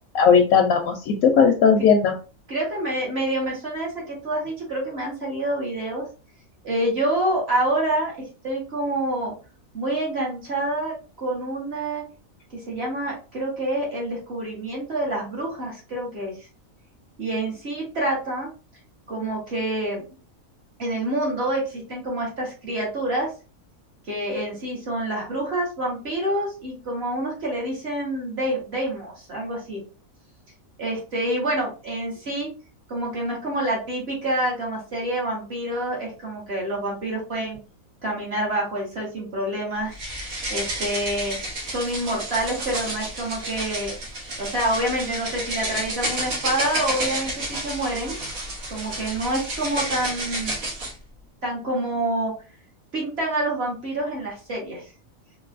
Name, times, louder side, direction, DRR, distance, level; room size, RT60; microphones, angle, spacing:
voice 1, 0.1-2.1, left 6 dB, 90° left, 3 dB, 1.0 m, -17 dB
voice 2, 2.5-6.0 6.6-8.1 8.4-9.3 9.7-12.0 12.5-16.3 17.2-18.5 19.1-20.0 20.8-23.3 24.1-29.8 30.8-32.5 32.9-37.6 38.0-39.9 40.5-41.4 41.6-43.9 44.4-48.1 48.7-50.5 51.4-52.3 52.9-54.8, right 1 dB, 50° right, -3 dB, 1.5 m, -27 dB
sound 1, 39.9-50.9, right 1 dB, 80° right, 1.5 m, -31 dB
3.8 x 2.5 x 2.5 m, 0.35 s
omnidirectional pair, 1.4 m